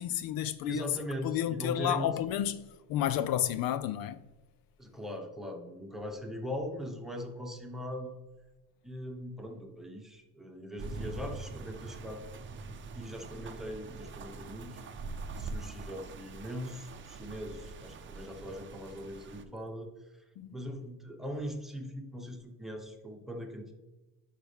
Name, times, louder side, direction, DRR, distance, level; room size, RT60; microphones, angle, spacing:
voice 1, 0.0-0.9 1.2-4.2 20.4-20.5, left 11 dB, 70° left, 0.5 m, -31 dB
voice 2, 0.6-2.1 4.8-8.2 8.8-12.3 12.9-14.8 15.4-19.9 20.5-23.7, equal, ahead, 1.2 m, -40 dB
sound 1, 10.8-19.4, right 3 dB, 30° right, 0.7 m, -43 dB
10.5 x 5.8 x 3.5 m
cardioid pair, 135°, 37 cm